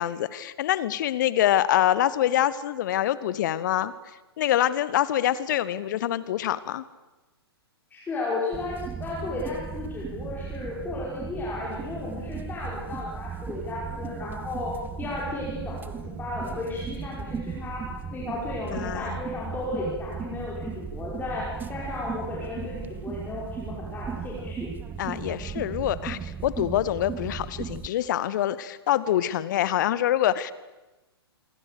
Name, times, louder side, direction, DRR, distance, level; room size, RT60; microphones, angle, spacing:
voice 1, 0.0-3.9 4.4-6.8 18.7-19.2 25.0-30.5, left 12 dB, 45° left, 18 dB, 1.1 m, -25 dB
voice 2, 7.9-14.7 15.0-17.8 18.1-24.7, left 2 dB, 15° left, -5 dB, 5.5 m, -34 dB
sound 1, 8.5-27.9, right 6 dB, 15° right, 1.2 m, -36 dB
27.5 x 23.0 x 6.8 m, 1.1 s
figure-of-eight pair, 110°, 14 cm